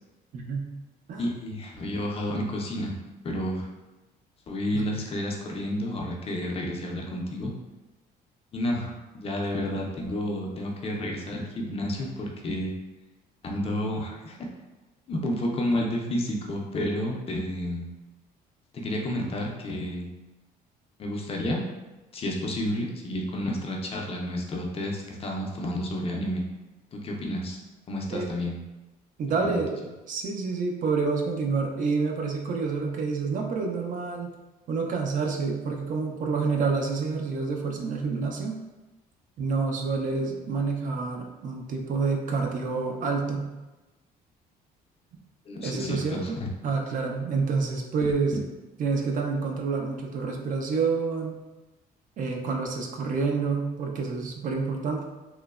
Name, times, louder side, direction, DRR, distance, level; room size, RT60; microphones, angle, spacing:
voice 1, 0.3-0.7 1.1-1.3 4.7-4.8 28.1-28.3 29.2-29.8 30.1-34.3 34.7-38.5 39.4-43.5 45.6-48.4 48.8-51.4 52.2-55.0, right 4 dB, 50° right, 1 dB, 0.4 m, -28 dB
voice 2, 1.2-3.0 3.2-3.7 4.5-7.5 8.5-12.7 13.4-14.5 15.1-17.9 18.8-20.1 21.0-21.6 22.1-26.4 26.9-27.6 27.9-28.6 29.4-29.6 45.5-46.5, left 1 dB, 35° left, 0 dB, 0.4 m, -30 dB
3.0 x 2.0 x 2.3 m, 1.1 s
cardioid pair, 110°, 17 cm